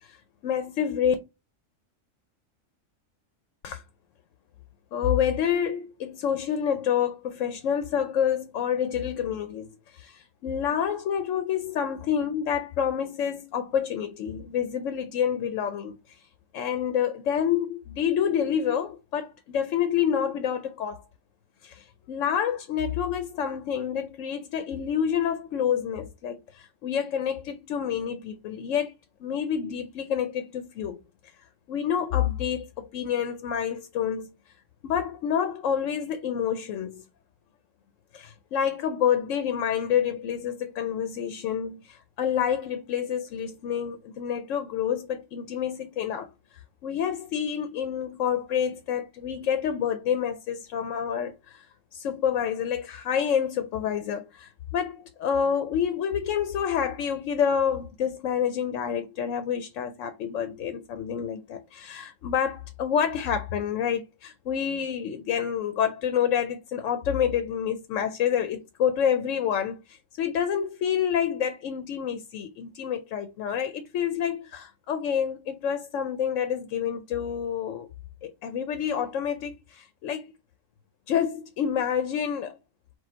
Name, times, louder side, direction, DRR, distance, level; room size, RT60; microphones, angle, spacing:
voice 1, 0.4-1.1 3.6-3.8 4.9-16.2 16.5-21.0 21.6-28.9 29.2-31.0 31.7-34.3 34.8-37.0 38.1-46.3 46.8-51.7 51.9-77.9 78.2-80.2 81.1-82.6, left 8 dB, 80° left, 1.0 m, -28 dB
4.5 x 2.4 x 4.3 m
omnidirectional pair, 1.3 m